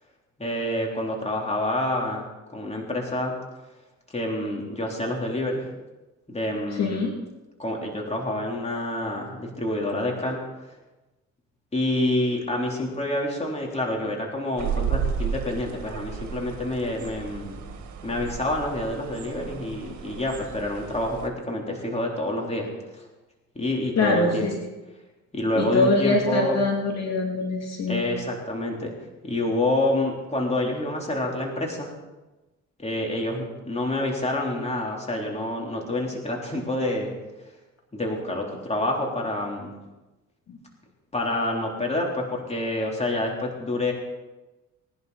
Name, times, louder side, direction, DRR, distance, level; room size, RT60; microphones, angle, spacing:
voice 1, 0.4-2.2 2.5-3.3 4.1-5.6 6.3-7.0 7.6-10.4 11.7-17.6 18.0-23.1 23.6-24.5 25.3-26.6 27.9-28.9 29.2-31.9 32.8-37.1 37.9-39.7 41.1-43.9, left 1 dB, 20° left, -1 dB, 3.6 m, -27 dB
voice 2, 6.7-7.1 24.0-24.7 25.6-28.0 40.5-40.6, left 3 dB, 60° left, 0 dB, 2.8 m, -24 dB
sound 1, 14.6-21.3, right 7 dB, 70° right, 1.8 m, -33 dB
19.0 x 11.5 x 4.2 m, 1.1 s
cardioid pair, 90°, 30 cm